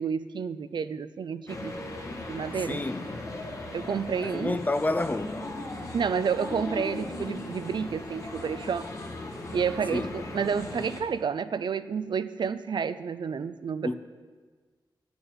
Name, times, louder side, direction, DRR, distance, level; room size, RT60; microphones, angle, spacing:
voice 1, 0.0-1.7 2.3-2.8 3.7-4.6 5.9-8.9 9.5-13.9, right 6 dB, 65° right, 0.5 m, -30 dB
sound 1, 1.5-11.0, left 2 dB, 40° left, 1.5 m, -38 dB
voice 2, 2.7-3.1 4.2-5.4 9.9-10.1 13.8-13.9, left 2 dB, 20° left, 0.5 m, -29 dB
12.0 x 7.0 x 8.9 m
wide cardioid pair, 160°, 8 cm